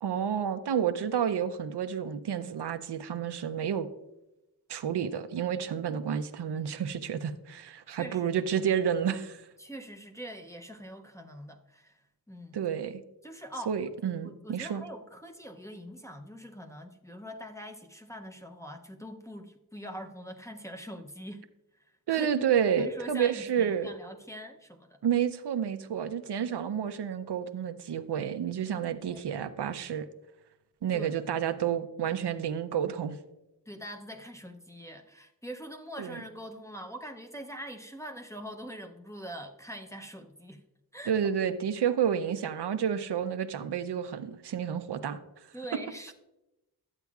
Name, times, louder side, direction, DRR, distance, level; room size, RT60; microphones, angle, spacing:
voice 1, 0.0-3.9 4.7-9.5 12.5-13.0 13.7-14.8 22.1-23.9 25.0-30.1 30.8-33.2 36.0-36.2 41.1-45.2, right 8 dB, 75° right, 11 dB, 0.6 m, -30 dB
voice 2, 7.9-8.3 9.6-12.6 13.2-13.7 14.2-21.5 21.8-22.5 22.7-25.0 28.9-29.3 30.9-31.4 33.7-40.6 40.9-41.1 45.5-46.1, equal, 10° left, 2 dB, 0.5 m, -43 dB
12.0 x 8.2 x 2.3 m, 0.97 s
wide cardioid pair, 100°, 41 cm